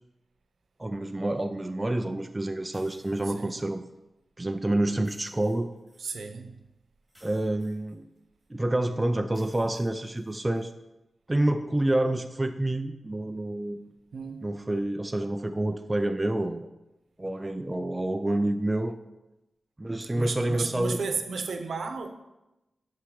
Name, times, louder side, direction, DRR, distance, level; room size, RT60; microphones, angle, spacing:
voice 1, 0.8-3.9 4.4-5.7 7.2-8.1 8.5-10.7 11.3-13.9 14.4-16.7 17.2-19.0 19.8-21.0, right 1 dB, 20° right, 7 dB, 0.5 m, -28 dB
sound 1, 2.7-3.6 4.9-6.1 7.1-8.5 9.3-10.6, equal, 5° left, 3.7 m, -60 dB
voice 2, 6.0-6.6 14.1-14.5 20.1-22.1, right 4 dB, 85° right, 7 dB, 0.9 m, -33 dB
12.0 x 4.7 x 4.9 m, 0.97 s
wide cardioid pair, 115°, 0 cm